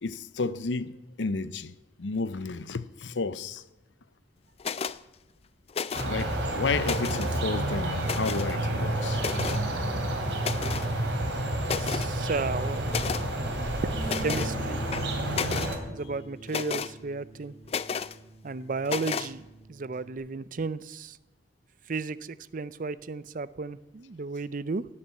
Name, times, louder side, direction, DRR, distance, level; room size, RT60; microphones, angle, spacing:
voice 1, 0.0-3.6 6.0-9.2, left 4 dB, 80° left, 0.7 m, -32 dB
sound 1, 4.6-5.0 5.7-6.2 6.7-7.3 8.0-8.5 9.2-9.6 10.4-10.9 11.3-11.4 11.6-12.1 12.9-13.3 14.0-14.5 14.9-15.8 16.5-16.9 17.7-18.2 18.9-19.3, left 6 dB, 35° left, 0.4 m, -32 dB
sound 2, 5.9-15.8, right 1 dB, 75° right, 3.0 m, -30 dB
voice 2, 11.8-13.2 14.0-14.8 15.9-17.5 18.4-19.4 19.7-21.2 21.9-24.8, right 4 dB, 45° right, 0.5 m, -34 dB
Bass guitar, 13.9-20.2, right 2 dB, 20° right, 4.1 m, -43 dB
17.5 x 6.6 x 8.4 m
head